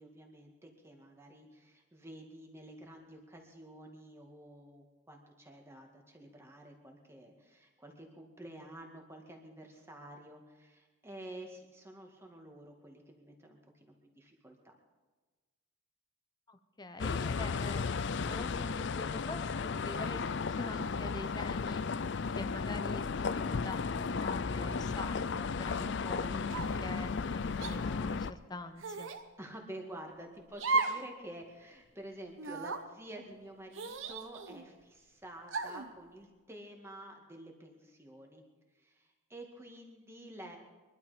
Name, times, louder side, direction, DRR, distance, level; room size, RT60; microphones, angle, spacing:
voice 1, 0.0-14.7 29.4-38.4 38.7-40.6, right 1 dB, 10° right, 1 dB, 2.0 m, -50 dB
voice 2, 16.5-21.8 22.4-29.1, left 2 dB, 20° left, 9 dB, 0.8 m, -45 dB
sound 1, 17.0-28.3, left 5 dB, 55° left, 0.4 m, -34 dB
sound 2, 26.5-26.9 27.6-27.8 28.8-29.2 30.6-31.1 31.4-31.5 32.4-32.8 33.7-34.6 35.5-35.9, right 3 dB, 65° right, 1.1 m, -35 dB
23.0 x 12.0 x 5.1 m, 1.3 s
head